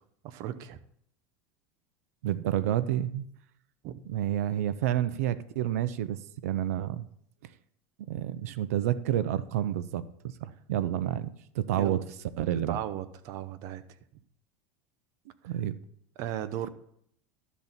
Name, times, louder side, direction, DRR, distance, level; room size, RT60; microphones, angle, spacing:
voice 1, 0.2-0.8 3.8-4.0 11.8-12.0 12.7-13.8 16.2-16.7, right 11 dB, 50° right, 12 dB, 0.7 m, -36 dB
voice 2, 2.2-3.3 4.1-7.1 7.4-7.5 8.1-10.0 10.4-12.0 12.4-12.8 15.4-15.8, right 12 dB, 85° right, 14 dB, 0.6 m, -29 dB
12.0 x 4.1 x 7.3 m, 0.69 s
supercardioid pair, 145°, 8 cm